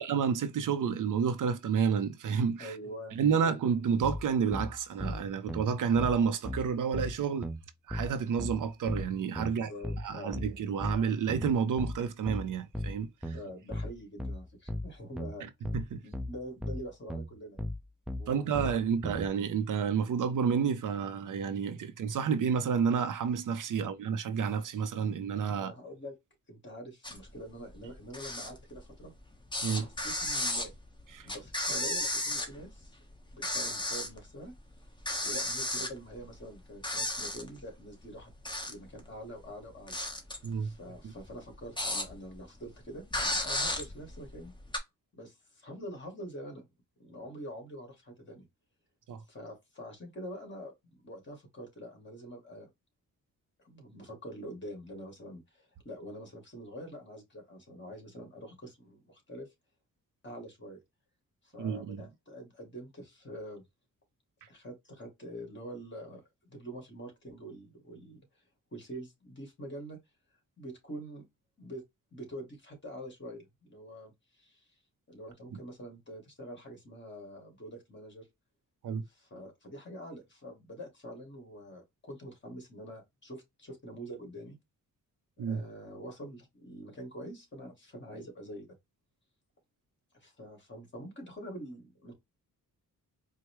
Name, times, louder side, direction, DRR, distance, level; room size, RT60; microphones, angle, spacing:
voice 1, 0.0-2.7 3.2-7.5 7.9-9.7 10.0-13.4 15.4-16.0 18.3-25.7 29.6-29.9 31.1-31.3 40.4-40.7 41.0-41.1 49.1-49.2 61.6-62.0 78.8-79.0 85.4-85.6, right 6 dB, 65° right, 0.6 m, -30 dB
voice 2, 2.6-3.6 9.4-10.4 13.2-15.5 16.0-17.6 18.2-18.7 21.8-21.9 23.7-23.9 25.5-26.1 26.5-29.1 29.6-30.7 31.2-33.0 33.3-34.5 35.2-38.3 38.6-40.0 40.6-44.5 45.1-46.7 47.0-48.5 49.3-52.7 53.6-59.5 60.2-60.8 61.4-63.6 64.5-66.2 66.5-68.2 68.7-70.0 70.6-71.3 71.6-71.8 72.1-74.7 75.1-78.3 79.1-84.6 85.4-88.8 90.1-92.1, equal, 35° left, 2.2 m, -45 dB
sound 1, 4.0-19.3, left 1 dB, ahead, 0.6 m, -37 dB
sound 2, 27.0-27.4 27.7-29.2 29.5-32.8 33.2-34.2 34.5-34.6 35.0-36.5 36.8-37.6 38.2-39.0 39.4-42.4 42.7-42.8 43.1-44.8, left 1 dB, 15° left, 1.1 m, -34 dB
4.6 x 2.2 x 3.0 m
cardioid pair, 105°, 34 cm